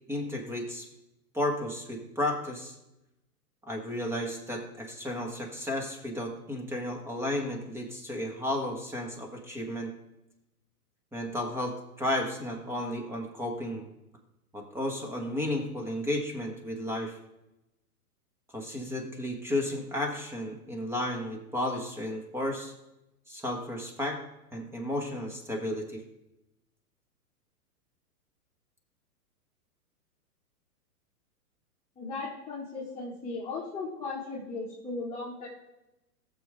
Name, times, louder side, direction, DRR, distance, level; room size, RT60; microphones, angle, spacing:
voice 1, 0.1-0.9 1.3-2.7 3.7-9.9 11.1-13.9 14.5-17.1 18.5-22.7 23.3-24.2 24.5-26.0, left 1 dB, 5° right, 2 dB, 1.7 m, -33 dB
voice 2, 32.0-35.5, left 3 dB, 10° left, -7 dB, 2.5 m, -37 dB
17.0 x 7.3 x 3.7 m, 0.92 s
hypercardioid pair, 125°, 46 cm